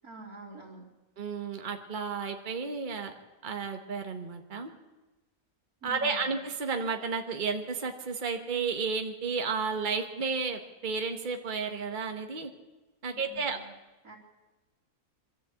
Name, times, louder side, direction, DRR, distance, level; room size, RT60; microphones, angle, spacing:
voice 1, 0.0-0.9 5.8-6.4 13.1-13.7 14.0-14.2, right 3 dB, 85° right, -5 dB, 3.7 m, -47 dB
voice 2, 1.2-3.1 3.4-4.7 5.8-12.5 13.0-13.6, right 5 dB, 35° right, 5 dB, 1.5 m, -32 dB
24.5 x 13.0 x 8.4 m, 1.1 s
omnidirectional pair, 1.5 m